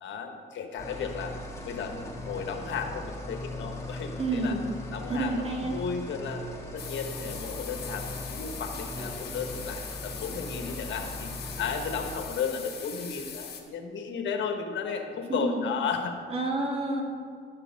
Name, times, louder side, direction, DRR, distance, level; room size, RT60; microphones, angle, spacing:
voice 1, 0.0-1.4 1.6-4.6 4.9-6.4 6.7-11.3 11.6-16.2, left 6 dB, 70° left, 4 dB, 1.3 m, -34 dB
sound 1, 0.8-12.2, left 1 dB, 15° left, 2.0 m, -39 dB
voice 2, 4.2-4.7 5.1-5.8 15.3-15.6 16.3-17.0, right 2 dB, 30° right, 1 dB, 2.1 m, -29 dB
sound 2, 6.8-13.6, left 7 dB, 55° left, 1.6 m, -41 dB
11.0 x 7.5 x 5.2 m, 2.3 s
cardioid pair, 90°, 20 cm